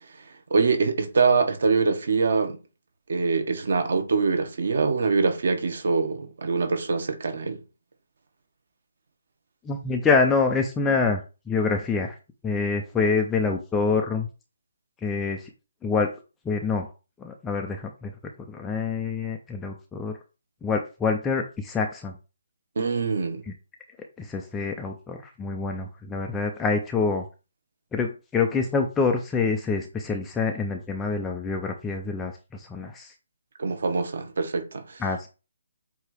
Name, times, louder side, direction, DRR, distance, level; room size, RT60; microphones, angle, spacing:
voice 1, 0.5-2.6 3.1-7.6 22.7-23.4 33.6-35.0, right 4 dB, 50° right, 1.4 m, -24 dB
voice 2, 9.6-12.2 12.4-14.3 15.0-15.5 15.8-16.1 16.4-16.9 17.2-18.1 18.4-20.2 20.6-22.2 23.5-23.6 24.2-27.2 27.9-33.1 35.0-35.3, left 4 dB, 5° left, 0.4 m, -26 dB
7.9 x 2.8 x 4.9 m
hypercardioid pair, 180°, 0 cm